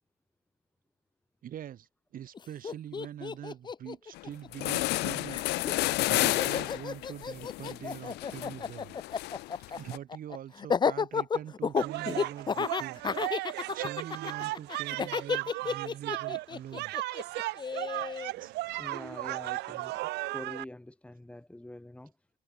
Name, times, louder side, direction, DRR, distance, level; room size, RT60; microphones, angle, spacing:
voice 1, 1.4-9.0 9.5-16.9 18.4-18.6, right 10 dB, 55° right, 3.5 m, -44 dB
Laughter, 2.3-2.4 2.6-5.0 5.3-18.3, left 6 dB, 25° left, 0.7 m, -32 dB
sound 1, 4.2-4.3 4.5-10.0, left 19 dB, 80° left, 0.6 m, -31 dB
sound 2, 11.8-20.6, right 19 dB, 80° right, 0.7 m, -36 dB
voice 2, 18.8-20.0 20.3-22.1, left 1 dB, 5° left, 5.5 m, -45 dB
cardioid pair, 110°, 17 cm